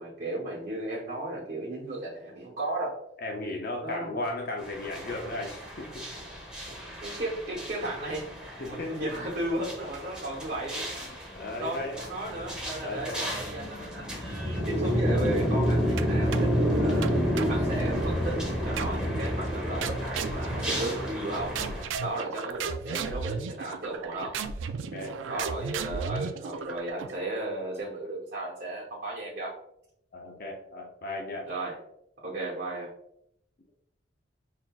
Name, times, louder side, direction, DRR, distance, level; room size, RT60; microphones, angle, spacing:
voice 1, 0.0-3.0 3.8-4.1 7.0-10.9 11.6-18.4 18.6-21.6 22.0-24.4 25.3-29.5 31.5-31.8 32.2-32.9, right 1 dB, 50° right, -5 dB, 1.1 m, -35 dB
voice 2, 3.2-6.1 8.6-9.1 11.0-12.0 12.8-13.3 24.9-25.2 30.1-31.5, left 2 dB, 50° left, 1 dB, 0.5 m, -36 dB
sound 1, 4.6-21.8, equal, 5° right, 1.1 m, -30 dB
sound 2, 16.0-16.6 17.0-18.2 18.8-19.3 19.8-21.3 21.6-27.3, right 5 dB, 75° right, 0.3 m, -35 dB
5.8 x 2.6 x 2.3 m, 0.74 s
head